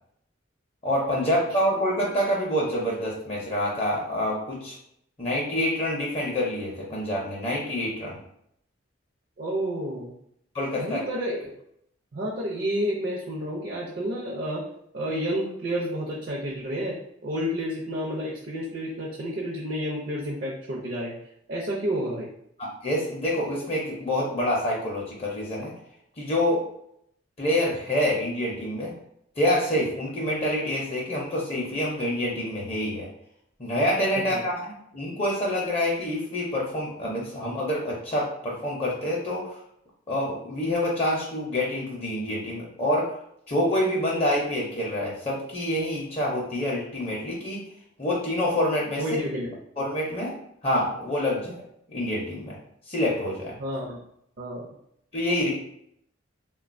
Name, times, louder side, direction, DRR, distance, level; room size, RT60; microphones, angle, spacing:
voice 1, 0.8-4.8 5.2-8.2 10.5-11.0 22.6-25.7 26.2-26.6 27.4-28.9 29.4-33.1 33.6-39.6 40.1-43.1 43.5-47.7 48.0-49.0 49.8-50.3 50.6-51.6 51.9-52.6 52.9-53.6 55.1-55.5, left 1 dB, 30° left, -3 dB, 0.5 m, -27 dB
voice 2, 9.4-10.1 10.7-11.5 12.1-14.6 14.9-16.9 17.2-21.1 21.5-22.3 34.3-34.4 49.0-49.5 53.6-54.0 54.4-54.7, equal, 55° right, -5 dB, 0.5 m, -30 dB
3.4 x 2.2 x 2.5 m, 0.73 s
head